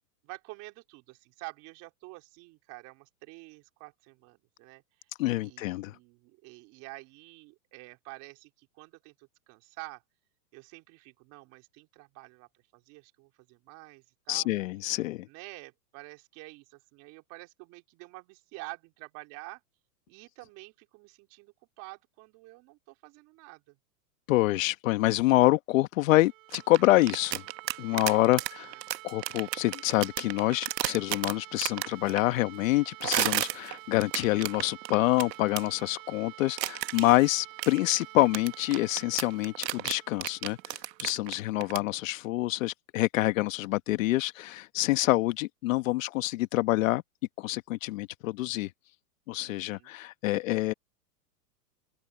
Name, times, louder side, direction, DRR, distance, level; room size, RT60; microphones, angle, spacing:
voice 1, 0.2-4.8 5.4-10.0 10.5-14.5 15.3-19.6 20.1-23.8 27.9-28.4 28.7-28.8 41.1-41.7 49.4-49.9, right 24 dB, 35° right, 3.9 m, -48 dB
voice 2, 5.2-5.9 14.3-15.3 24.3-27.4 27.8-28.7 29.0-47.0 47.4-48.7 49.3-50.7, left 18 dB, 50° left, 1.3 m, -26 dB
sound 1, 26.1-41.9, right 21 dB, 55° right, 4.5 m, -49 dB
sound 2, 26.5-32.2 33.0-35.6 36.6-37.2 37.6-41.8, right 13 dB, 80° right, 1.2 m, -32 dB
open air
hypercardioid pair, 145°, 50 cm